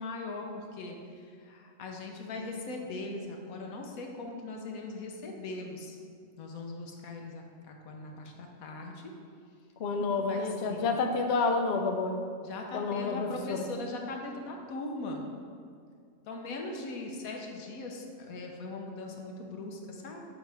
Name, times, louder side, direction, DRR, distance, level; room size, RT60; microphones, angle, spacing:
voice 1, 0.0-6.0 6.4-9.1 10.0-11.0 12.4-15.3 16.2-20.3, left 2 dB, 85° left, 1 dB, 1.3 m, -40 dB
voice 2, 9.8-12.2 12.7-13.7, left 4 dB, 60° left, 4 dB, 0.7 m, -29 dB
7.5 x 5.0 x 3.4 m, 2.2 s
omnidirectional pair, 1.4 m